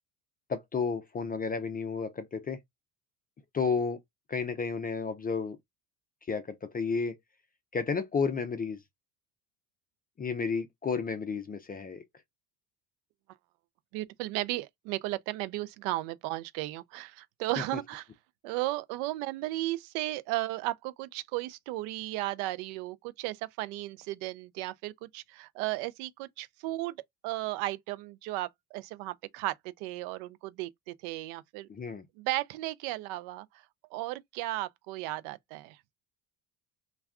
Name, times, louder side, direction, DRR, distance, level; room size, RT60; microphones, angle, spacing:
voice 1, 0.5-2.6 3.5-4.0 4.3-5.6 6.3-7.2 7.7-8.8 10.2-12.0 31.7-32.0, left 5 dB, 20° left, 0.3 m, -32 dB
voice 2, 13.9-18.1 18.4-27.0 27.2-31.7 32.2-33.5 33.9-35.8, right 18 dB, 75° right, 0.5 m, -35 dB
2.3 x 2.2 x 3.5 m
supercardioid pair, 85°, 50 cm